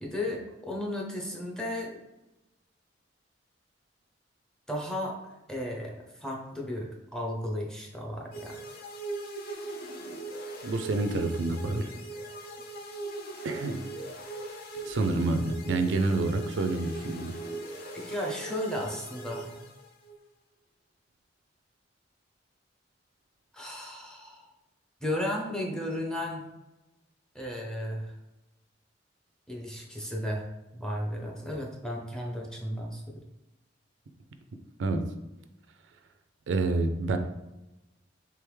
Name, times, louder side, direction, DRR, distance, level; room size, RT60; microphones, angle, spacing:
voice 1, 0.0-2.0 4.7-5.2 5.5-8.6 17.9-19.6 23.5-24.5 25.0-26.4 27.3-28.1 29.5-30.4 30.7-33.0, left 1 dB, 5° left, -1 dB, 0.7 m, -34 dB
sound 1, 8.3-20.2, right 2 dB, 55° left, 0.6 m, -40 dB
voice 2, 10.6-11.9 13.4-13.8 14.8-17.3 34.8-35.1 36.5-37.2, right 3 dB, 75° right, 8 dB, 0.4 m, -28 dB
3.4 x 3.4 x 3.2 m, 0.98 s
head